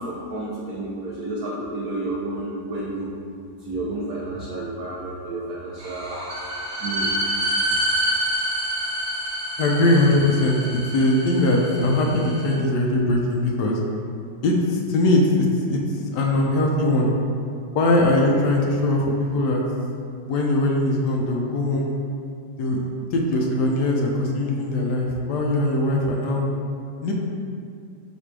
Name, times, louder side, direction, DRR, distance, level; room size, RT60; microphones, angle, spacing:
voice 1, 0.0-3.1 3.6-6.2 6.8-7.3, right 2 dB, 70° right, -5 dB, 1.0 m, -31 dB
sound 1, 5.8-12.5, equal, 50° right, 1.4 m, -27 dB
voice 2, 9.6-13.8 14.4-15.8 16.1-17.1 17.7-19.6 20.3-21.9 22.6-22.8 23.1-26.5 27.0-27.1, left 1 dB, 75° left, -1 dB, 1.1 m, -21 dB
4.1 x 2.6 x 4.5 m, 2.4 s
omnidirectional pair, 1.9 m